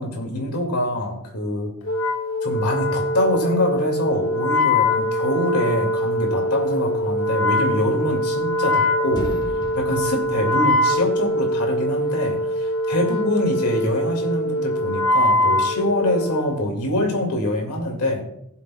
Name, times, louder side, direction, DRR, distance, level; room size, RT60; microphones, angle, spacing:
voice 1, 0.0-1.7 2.4-9.3 9.8-18.2, left 1 dB, 85° left, 2 dB, 2.3 m, -24 dB
Wind instrument woodwind instrument, 1.8-16.6, left 1 dB, 65° left, 0.8 m, -23 dB
sound 1, 8.4-8.8 9.0-11.2, left 1 dB, 20° left, 1.0 m, -36 dB
19.5 x 7.5 x 2.3 m, 0.76 s
head